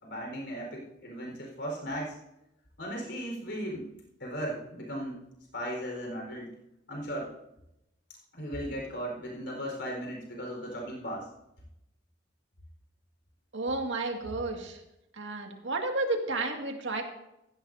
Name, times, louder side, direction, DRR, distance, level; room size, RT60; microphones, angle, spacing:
voice 1, 0.0-2.2 2.8-3.9 4.2-5.2 5.5-6.5 6.9-7.3 8.3-11.3, equal, 65° left, 0 dB, 4.5 m, -36 dB
voice 2, 13.5-14.8 15.1-17.0, right 2 dB, 75° right, 2 dB, 2.1 m, -32 dB
16.0 x 15.0 x 2.7 m, 0.86 s
head